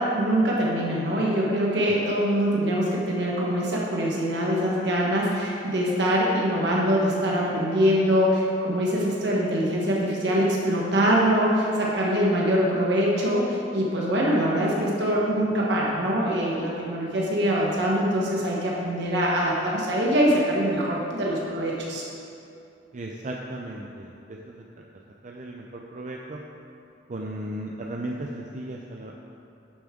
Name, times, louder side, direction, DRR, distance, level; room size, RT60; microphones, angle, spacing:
voice 1, 0.0-22.0, equal, 70° right, -4 dB, 1.4 m, -23 dB
voice 2, 22.9-24.1 25.2-25.6 25.9-26.4 27.1-29.2, right 1 dB, 45° right, 0 dB, 0.5 m, -35 dB
11.0 x 7.0 x 3.8 m, 2.7 s
head